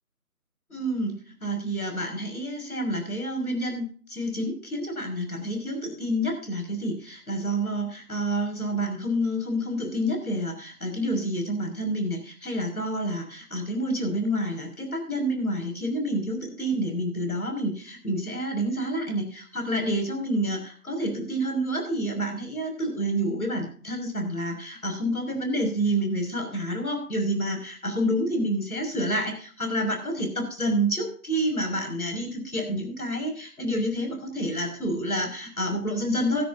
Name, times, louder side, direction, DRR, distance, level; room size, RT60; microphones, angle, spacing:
voice 1, 0.7-36.5, right 1 dB, 70° left, 4 dB, 6.3 m, -28 dB
15.0 x 14.0 x 2.8 m, 0.42 s
figure-of-eight pair, 180°, 46 cm